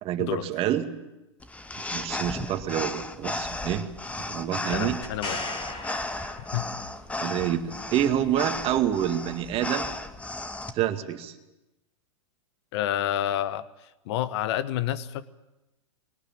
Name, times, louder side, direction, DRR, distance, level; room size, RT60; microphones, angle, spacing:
voice 1, 0.0-0.9 1.9-3.9 4.3-5.0 7.2-9.9 10.7-11.3, right 11 dB, 35° right, 7 dB, 2.1 m, -27 dB
sound 1, 1.4-10.7, left 2 dB, 10° left, 1.3 m, -35 dB
voice 2, 4.7-5.4 6.5-6.6 12.7-13.6 14.1-15.2, left 12 dB, 55° left, 16 dB, 1.2 m, -28 dB
sound 2, 5.0-7.0 10.7-10.8, left 2 dB, 35° left, 5.6 m, -37 dB
21.5 x 18.5 x 9.0 m, 0.98 s
hypercardioid pair, 115°, 16 cm